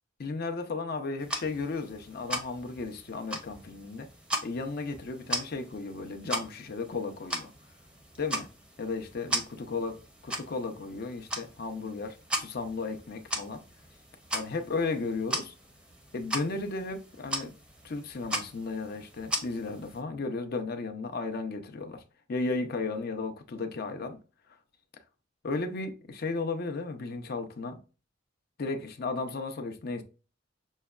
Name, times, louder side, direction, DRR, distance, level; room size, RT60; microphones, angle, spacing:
voice 1, 0.2-4.1 4.4-7.5 8.2-8.5 8.8-9.9 10.2-13.6 14.3-15.5 16.1-17.5 17.8-22.0 22.3-24.2 25.4-27.8 28.6-30.0, left 3 dB, 50° left, 0.5 m, -34 dB
sound 1, 1.2-20.0, right 1 dB, 5° right, 0.6 m, -38 dB
6.2 x 2.1 x 2.3 m
head